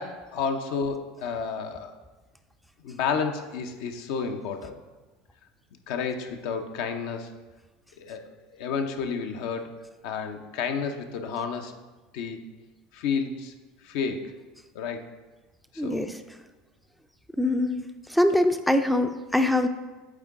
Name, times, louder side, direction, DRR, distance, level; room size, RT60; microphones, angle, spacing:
voice 1, 0.0-2.0 2.8-4.8 5.9-7.3 8.0-8.2 8.6-9.7 10.0-11.7 12.1-12.5 12.9-13.5 13.8-14.2 14.7-15.0 15.8-16.1, left 5 dB, 70° left, 6 dB, 0.6 m, -31 dB
voice 2, 15.8-16.1 17.4-17.8 18.1-19.7, left 1 dB, ahead, 8 dB, 0.4 m, -23 dB
8.5 x 3.7 x 3.6 m, 1.2 s
hypercardioid pair, 85°, 0 cm